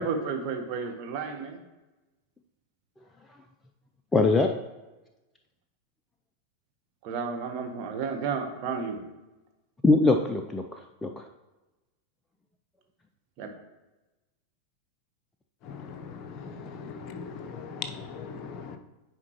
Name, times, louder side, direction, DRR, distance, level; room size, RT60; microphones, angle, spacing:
voice 1, 0.0-1.6 7.0-9.0 13.4-13.5, right 5 dB, 40° right, 4 dB, 1.1 m, -32 dB
voice 2, 4.1-4.6 9.8-11.2, left 3 dB, 10° left, 4 dB, 0.4 m, -23 dB
voice 3, 15.6-18.8, left 5 dB, 40° left, 6 dB, 0.7 m, -39 dB
9.6 x 4.5 x 3.0 m, 1.1 s
figure-of-eight pair, 90°, 0 cm